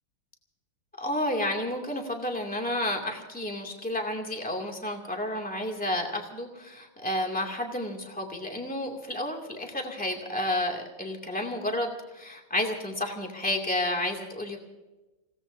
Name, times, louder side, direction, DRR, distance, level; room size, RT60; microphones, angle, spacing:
voice 1, 1.0-14.6, left 1 dB, 5° left, 1 dB, 2.3 m, -31 dB
29.0 x 17.5 x 2.7 m, 1.1 s
omnidirectional pair, 2.2 m